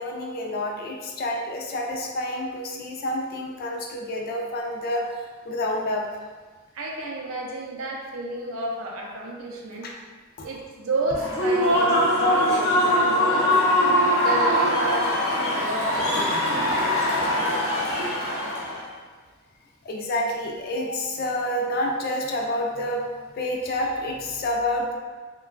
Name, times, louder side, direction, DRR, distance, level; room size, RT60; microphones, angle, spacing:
voice 1, 0.0-6.1 9.8-9.9 10.4-10.5 17.6-17.7 19.8-23.0 23.4-24.9, left 1 dB, 45° left, 0 dB, 0.4 m, -28 dB
voice 2, 6.7-9.9 10.4-13.5 14.1-16.1 18.0-18.1, right 2 dB, 80° right, -1 dB, 0.5 m, -31 dB
Human voice / Cheering / Applause, 11.1-18.8, left 1 dB, 65° left, 0.9 m, -22 dB
2.9 x 2.2 x 2.4 m, 1.4 s
head